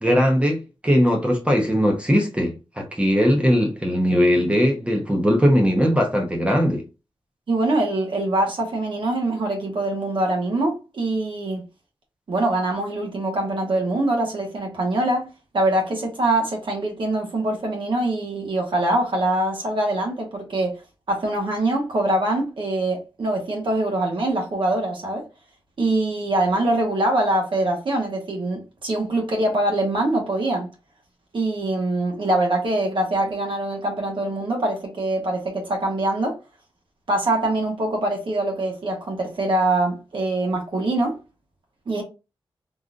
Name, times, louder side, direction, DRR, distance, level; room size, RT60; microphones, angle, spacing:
voice 1, 0.0-6.9, equal, 15° right, 0.7 m, -19 dB
voice 2, 7.5-11.6 12.3-20.7 21.1-25.2 25.8-30.7 31.3-36.4 37.1-41.2 41.9-42.0, right 2 dB, 60° right, 1.1 m, -23 dB
3.7 x 2.4 x 2.5 m
wide cardioid pair, 110°, 10 cm